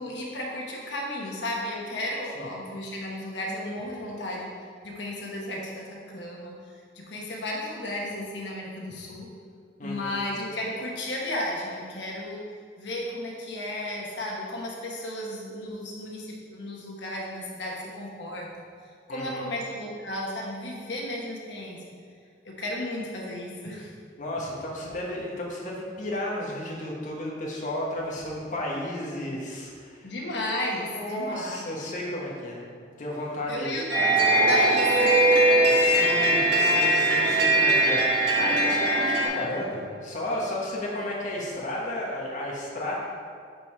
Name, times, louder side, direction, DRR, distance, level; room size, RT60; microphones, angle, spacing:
voice 1, 0.0-4.5 4.8-9.3 9.8-12.4 12.8-18.7 19.1-21.8 22.4-23.9 30.0-31.8 33.5-35.5, left 1 dB, 90° left, -2 dB, 1.1 m, -34 dB
voice 2, 9.8-10.1 19.1-19.5 24.2-30.1 30.9-32.6 33.0-33.8 35.7-42.9, left 1 dB, 45° left, -3 dB, 1.2 m, -33 dB
sound 1, 33.9-39.3, right 1 dB, 85° right, 1.7 m, -21 dB
5.3 x 4.7 x 5.5 m, 2.1 s
head